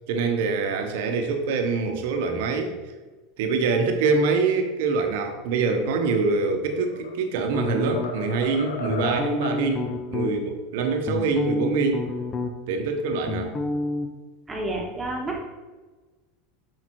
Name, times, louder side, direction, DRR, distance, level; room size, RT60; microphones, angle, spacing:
voice 1, 0.1-2.7 3.4-12.0 12.7-13.6, right 4 dB, 70° right, 5 dB, 0.9 m, -25 dB
sound 1, 6.7-7.2 7.5-9.7, left 3 dB, 80° left, 0.8 m, -34 dB
sound 2, 7.5-8.4 8.9-10.3 10.8-12.7 13.0-14.1, left 2 dB, 30° left, 0.7 m, -29 dB
voice 2, 14.5-15.4, right 2 dB, 20° right, 0 dB, 1.4 m, -29 dB
7.5 x 4.8 x 3.1 m, 1.3 s
hypercardioid pair, 95°, 0 cm